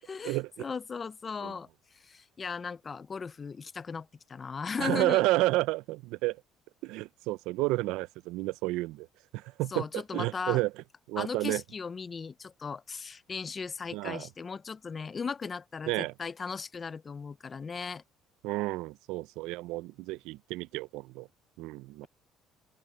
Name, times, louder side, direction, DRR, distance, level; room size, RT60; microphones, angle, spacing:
voice 1, 0.1-1.7 1.9-5.2 9.7-10.6 11.2-18.0, left 5 dB, 20° left, 0.4 m, -37 dB
voice 2, 4.8-6.4 6.8-9.1 9.3-10.7 11.1-11.6 13.9-14.3 15.9-16.1 18.4-21.3 21.6-22.1, right 19 dB, 90° right, 0.3 m, -31 dB
open air
cardioid pair, 175°, 0 cm